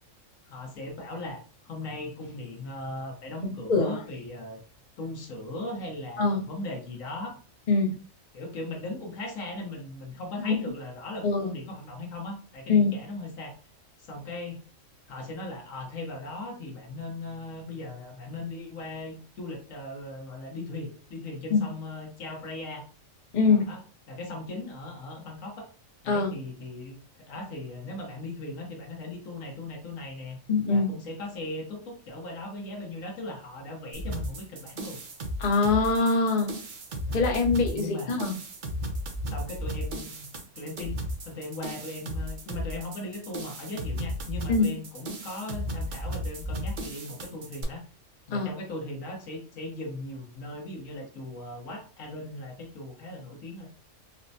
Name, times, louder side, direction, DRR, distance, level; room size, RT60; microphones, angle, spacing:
voice 1, 0.5-4.6 5.0-7.4 8.3-13.6 14.0-14.6 15.1-22.8 23.4-23.8 24.1-25.7 26.0-30.4 30.7-35.0 37.7-38.2 39.2-40.2 40.6-47.8 48.3-53.7, left 2 dB, 80° left, 1 dB, 1.3 m, -38 dB
voice 2, 7.7-8.0 10.4-10.5 11.2-11.5 12.7-12.9 21.5-21.6 23.3-23.7 26.1-26.3 30.5-30.9 35.4-36.6 37.1-38.3 44.5-44.7 48.3-48.5, left 4 dB, 45° left, 1 dB, 0.7 m, -23 dB
sound 1, 33.9-47.6, equal, 50° right, 0.7 m, -35 dB
4.3 x 2.1 x 2.6 m, 0.38 s
omnidirectional pair, 1.4 m